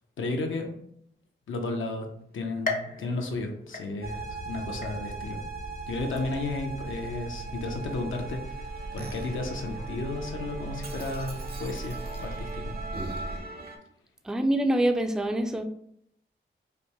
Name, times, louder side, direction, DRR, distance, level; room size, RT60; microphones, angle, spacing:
voice 1, 0.2-0.8 1.5-2.1 2.3-5.4 5.9-12.8, left 2 dB, 80° left, 3 dB, 0.7 m, -33 dB
sound 1, 2.6-4.4 4.8-5.4 5.9-6.0 7.0-7.1, left 3 dB, 45° left, 0.6 m, -36 dB
Musical instrument, 2.6-13.8, right 2 dB, 50° right, 0.7 m, -43 dB
sound 2, 4.0-13.4, right 3 dB, 85° right, 0.9 m, -38 dB
voice 2, 14.3-15.6, right 1 dB, 5° right, 6 dB, 0.4 m, -25 dB
5.0 x 2.1 x 3.0 m, 0.69 s
cardioid pair, 80°, 20 cm